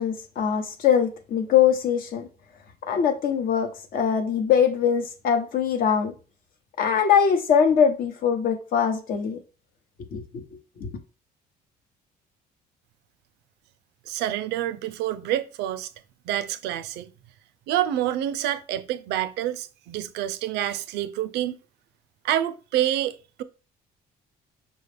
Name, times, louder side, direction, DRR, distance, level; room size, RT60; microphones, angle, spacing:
voice 1, 0.0-2.3 2.9-6.1 6.8-9.4 10.1-10.4 10.8-10.9, left 7 dB, 60° left, 0.8 m, -22 dB
voice 2, 14.1-15.9 16.3-17.1 17.7-21.6 22.2-23.4, right 12 dB, 85° right, 0.5 m, -27 dB
5.2 x 2.3 x 3.3 m
cardioid pair, 110°, 17 cm